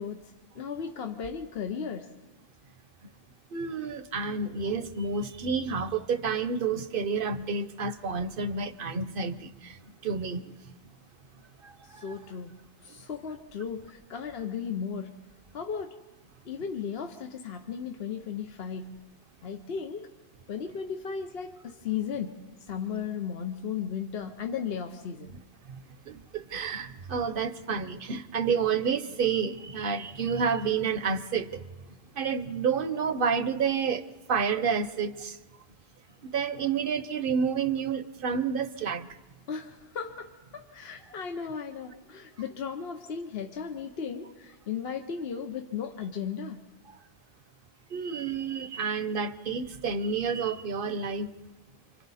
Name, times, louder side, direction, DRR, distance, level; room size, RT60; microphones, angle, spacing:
voice 1, 0.0-2.1 11.8-12.5 12.8-15.1 15.5-16.0 16.4-19.0 19.4-20.1 20.5-25.3 39.5-46.6, left 7 dB, 70° left, 5 dB, 1.1 m, -36 dB
voice 2, 3.5-9.5 10.0-10.4 11.6-11.7 12.1-12.2 26.1-31.5 32.2-34.0 34.3-35.3 36.2-39.1 47.9-51.3, right 5 dB, 60° right, 12 dB, 1.0 m, -29 dB
28.5 x 25.5 x 4.2 m, 1.2 s
omnidirectional pair, 1.0 m